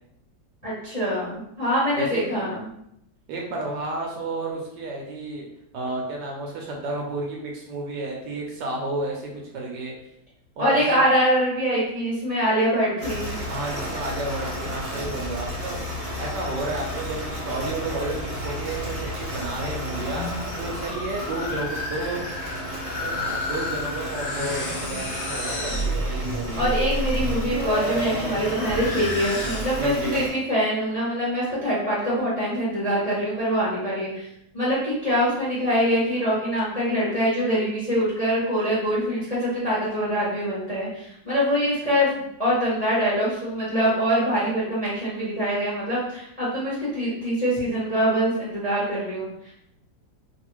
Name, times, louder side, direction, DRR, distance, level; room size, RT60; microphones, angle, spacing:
voice 1, 0.6-2.7 10.6-13.3 26.5-34.3 34.5-42.1 42.4-49.3, equal, 35° left, -8 dB, 0.6 m, -24 dB
voice 2, 2.0-2.4 3.3-5.5 5.7-9.9 10.6-11.0 13.5-15.8 16.2-22.2 23.0-26.7 29.8-30.3, right 2 dB, 75° right, 0 dB, 1.1 m, -31 dB
sound 1, 13.0-30.3, equal, 40° right, 0.7 m, -33 dB
sound 2, 19.9-30.0, left 1 dB, 80° left, 0.6 m, -30 dB
3.0 x 2.4 x 3.0 m, 0.78 s
omnidirectional pair, 2.1 m